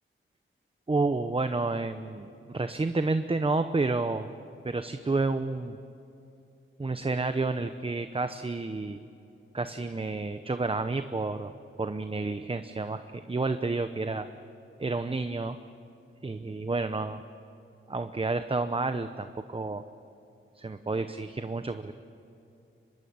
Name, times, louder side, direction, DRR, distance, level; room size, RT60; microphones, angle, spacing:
voice 1, 0.9-4.3 4.6-5.8 6.8-9.0 9.5-11.5 11.8-14.3 14.8-15.6 16.2-17.2 17.9-19.8 20.5-21.9, right 3 dB, 25° right, 9 dB, 0.8 m, -30 dB
24.5 x 22.0 x 8.8 m, 2.7 s
wide cardioid pair, 95°, 21 cm